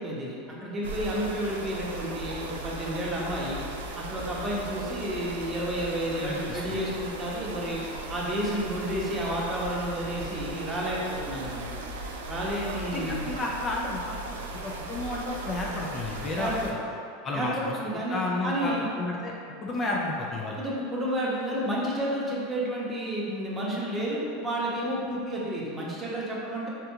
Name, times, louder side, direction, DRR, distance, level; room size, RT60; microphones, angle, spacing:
voice 1, 0.0-3.6 4.0-7.8 8.1-11.7 12.3-13.3 16.4-16.7 17.3-18.2 18.4-18.9 20.6-26.7, equal, 20° right, -5 dB, 0.7 m, -31 dB
sound 1, 0.8-16.7, right 2 dB, 90° right, 0.3 m, -37 dB
voice 2, 6.2-6.8 12.9-16.5 17.2-17.8 18.1-19.3 19.6-20.6, left 2 dB, 30° left, -2 dB, 0.4 m, -32 dB
3.5 x 2.7 x 2.3 m, 2.5 s
hypercardioid pair, 105°, 0 cm